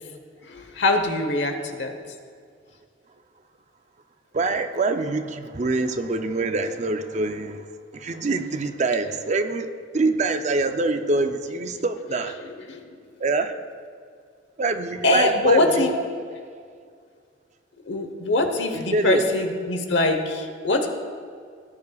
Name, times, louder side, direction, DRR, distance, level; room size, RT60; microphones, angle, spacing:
voice 1, 0.5-1.9 12.4-12.8 15.0-15.9 17.9-20.9, left 2 dB, 75° left, 6 dB, 1.0 m, -23 dB
voice 2, 4.3-7.7 7.9-12.3 13.2-13.6 14.6-16.0 18.7-19.2, right 3 dB, 40° right, 8 dB, 0.5 m, -25 dB
17.0 x 9.5 x 2.4 m, 2.1 s
head